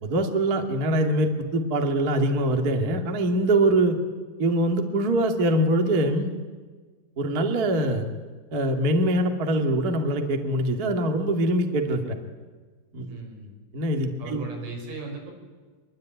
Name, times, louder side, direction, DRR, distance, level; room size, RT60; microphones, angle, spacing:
voice 1, 0.0-4.0 4.4-6.3 7.2-8.0 8.5-12.1 12.9-13.2 13.7-14.4, right 1 dB, 35° right, 4 dB, 1.5 m, -23 dB
voice 2, 13.1-13.5 14.2-15.3, right 3 dB, 85° right, 1 dB, 8.6 m, -37 dB
25.5 x 23.0 x 9.5 m, 1.4 s
omnidirectional pair, 5.8 m